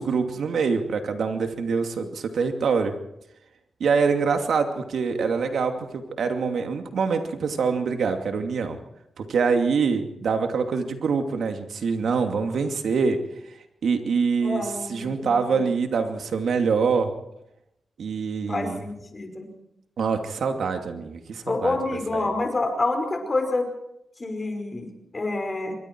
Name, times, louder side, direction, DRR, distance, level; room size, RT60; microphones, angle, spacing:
voice 1, 0.0-2.9 3.8-8.8 9.2-13.2 13.8-17.1 18.0-18.8 20.0-21.8 22.1-22.3, right 5 dB, 75° right, 5 dB, 2.6 m, -25 dB
voice 2, 14.4-15.6 18.5-19.5 21.5-23.7 24.2-24.9 25.1-25.8, left 2 dB, 30° left, 5 dB, 5.4 m, -27 dB
27.0 x 23.0 x 4.7 m, 0.83 s
wide cardioid pair, 105°, 0 cm